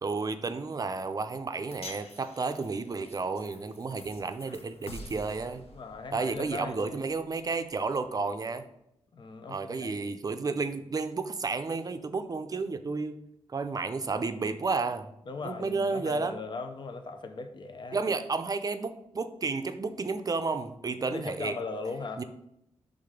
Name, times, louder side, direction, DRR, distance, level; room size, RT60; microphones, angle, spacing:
voice 1, 0.0-5.7 6.1-8.7 9.5-13.2 13.5-15.1 15.4-16.4 17.9-21.5 22.2-22.3, right 4 dB, 35° right, 10 dB, 0.5 m, -32 dB
sound 1, 1.7-8.1, left 2 dB, 75° left, 1.0 m, -49 dB
voice 2, 5.7-7.0 9.1-10.0 15.3-18.0 21.0-22.2, left 4 dB, 50° left, 7 dB, 0.6 m, -39 dB
5.8 x 3.6 x 5.0 m, 0.79 s
wide cardioid pair, 95°, 10 cm